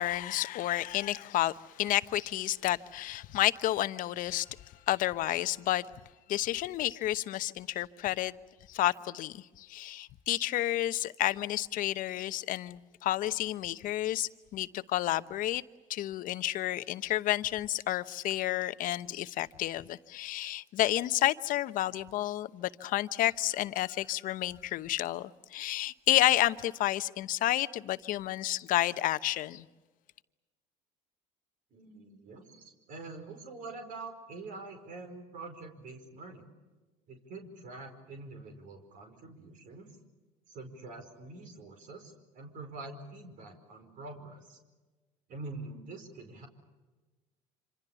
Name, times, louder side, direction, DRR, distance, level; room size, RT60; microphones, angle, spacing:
voice 1, 0.0-4.5 4.9-5.9 6.3-8.3 8.7-15.6 15.9-29.7, left 14 dB, 60° left, 1.0 m, -30 dB
voice 2, 31.7-36.5 37.1-39.9 40.5-44.6 45.3-46.5, right 3 dB, 60° right, 5.0 m, -45 dB
26.5 x 26.0 x 7.1 m
supercardioid pair, 95°, 16 cm